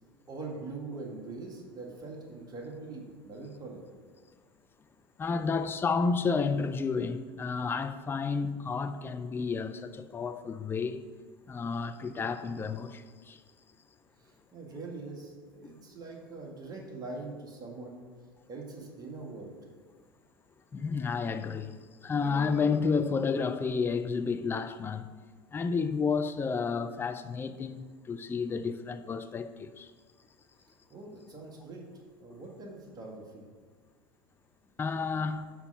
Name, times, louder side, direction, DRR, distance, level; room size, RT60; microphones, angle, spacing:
voice 1, 0.3-3.8 14.2-18.0 18.5-19.6 30.9-31.9 32.2-33.4, right 3 dB, 30° right, 2.0 m, -43 dB
voice 2, 5.2-11.0 11.5-13.4 20.7-21.7 22.0-25.1 25.5-29.9 34.8-35.5, left 5 dB, 20° left, 0.4 m, -31 dB
Human voice, 22.2-23.9, right 1 dB, 10° right, 1.3 m, -47 dB
6.0 x 5.5 x 5.7 m
hypercardioid pair, 90°, 12 cm